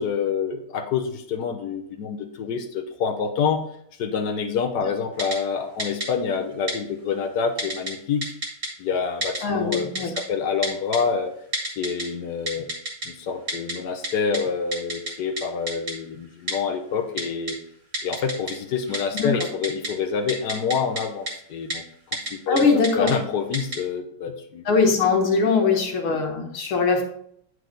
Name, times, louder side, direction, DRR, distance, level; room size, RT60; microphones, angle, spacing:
voice 1, 0.0-3.6 4.0-8.3 8.8-11.3 11.8-12.7 13.0-17.6 18.0-24.6 25.6-25.7, left 6 dB, 65° left, 7 dB, 1.1 m, -27 dB
Typing, 5.2-5.4 5.8-6.1 6.7-6.8 7.6-7.9 8.2-8.7 9.2-9.4 9.7-10.2 10.6-11.0 11.5-12.0 12.5-13.1 13.5-13.7 14.0-14.1 14.3-14.4 14.7-15.1 15.4-15.5 15.7-15.9 16.5-16.6 17.2-17.5 17.9-18.5 18.8-19.9 20.3-21.0 21.3-21.4 21.7-21.8 22.1-22.3 22.6-23.1 23.5-23.8, right 1 dB, 35° right, 2.1 m, -28 dB
voice 2, 9.4-10.1 19.1-19.4 22.5-23.1 24.7-27.0, left 4 dB, 90° left, 2 dB, 2.2 m, -21 dB
9.3 x 4.8 x 3.8 m, 0.68 s
omnidirectional pair, 2.3 m